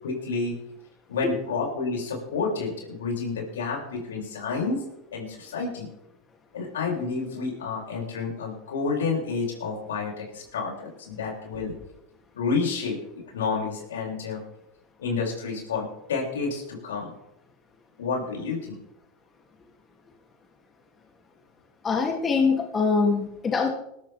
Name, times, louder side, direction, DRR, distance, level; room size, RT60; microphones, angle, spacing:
voice 1, 0.0-0.5 1.1-4.8 5.1-5.9 6.5-11.7 12.3-13.0 13.3-14.4 15.0-17.1 18.0-18.8, left 4 dB, 90° left, -1 dB, 7.4 m, -29 dB
voice 2, 21.8-23.7, left 4 dB, 25° left, 0 dB, 3.2 m, -23 dB
20.5 x 13.0 x 3.8 m, 0.81 s
hypercardioid pair, 100°, 0 cm